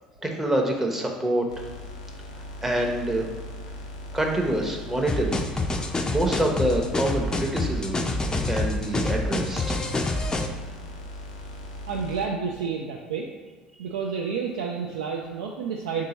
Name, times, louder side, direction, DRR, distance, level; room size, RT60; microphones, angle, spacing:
voice 1, 0.2-1.7 2.6-3.3 4.1-5.5 5.7-8.0 8.4-9.8, right 1 dB, 10° right, 1 dB, 0.7 m, -26 dB
sound 1, 1.5-12.3, left 1 dB, 80° left, 0.4 m, -39 dB
sound 2, 5.1-10.5, left 2 dB, 20° left, 0.4 m, -27 dB
voice 2, 11.9-13.3 13.8-16.1, right 6 dB, 75° right, -1 dB, 0.3 m, -30 dB
3.6 x 2.7 x 4.0 m, 1.4 s
figure-of-eight pair, 60°, 3 cm